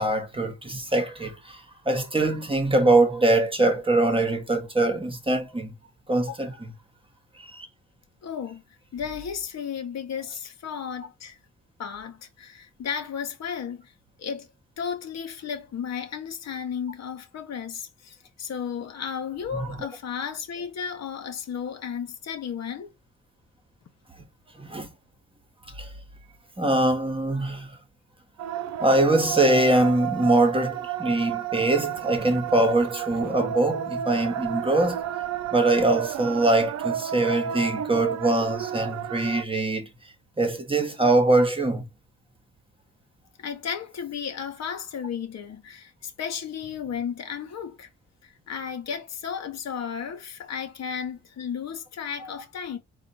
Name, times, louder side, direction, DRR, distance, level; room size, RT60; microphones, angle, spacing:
voice 1, 0.0-1.6 1.9-5.7 6.1-6.7 7.4-7.7 19.5-19.8 24.6-24.9 25.8-25.9 26.6-27.7 28.8-35.1 35.5-39.9 40.4-41.9, right 2 dB, 20° right, 1.2 m, -23 dB
voice 2, 8.2-8.6 8.9-11.4 11.8-13.9 14.2-14.5 14.8-22.9 43.4-47.9 48.2-52.8, left 7 dB, 60° left, 1.2 m, -34 dB
sound 1, 28.4-39.4, right 10 dB, 60° right, 0.5 m, -32 dB
4.2 x 2.5 x 4.2 m
cardioid pair, 90°, 30 cm